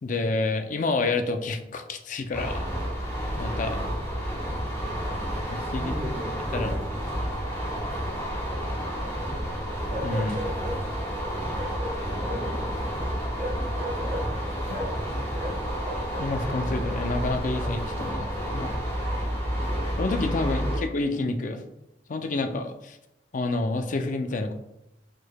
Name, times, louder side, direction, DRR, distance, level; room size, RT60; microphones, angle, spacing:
voice 1, 0.0-2.7 3.4-3.8 5.5-5.9 6.5-6.8 10.0-10.4 14.7-14.8 16.2-18.7 20.0-21.6 22.1-23.0 23.3-24.5, left 3 dB, 45° left, 7 dB, 0.4 m, -29 dB
sound 1, 2.3-20.8, equal, 15° left, 1.0 m, -30 dB
Bark, 4.4-5.0 7.5-8.6 9.9-10.8 11.5-12.6 13.3-15.1 15.3-17.8 18.4-19.4, equal, 50° right, 1.3 m, -37 dB
voice 2, 5.3-6.8 12.1-13.3 20.5-20.6, equal, 10° right, 1 dB, 0.6 m, -38 dB
4.6 x 4.5 x 2.2 m, 0.87 s
head